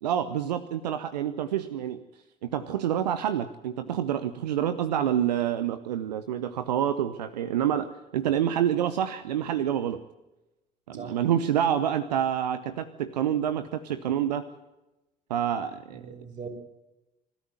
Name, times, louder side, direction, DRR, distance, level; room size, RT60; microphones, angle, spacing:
voice 1, 0.0-2.0 2.4-10.0 10.9-14.5 15.3-16.1, right 10 dB, 80° right, 11 dB, 0.8 m, -27 dB
voice 2, 10.9-11.2 15.9-16.5, right 5 dB, 35° right, 2 dB, 6.4 m, -40 dB
26.0 x 13.5 x 8.0 m, 0.99 s
hypercardioid pair, 55°, 21 cm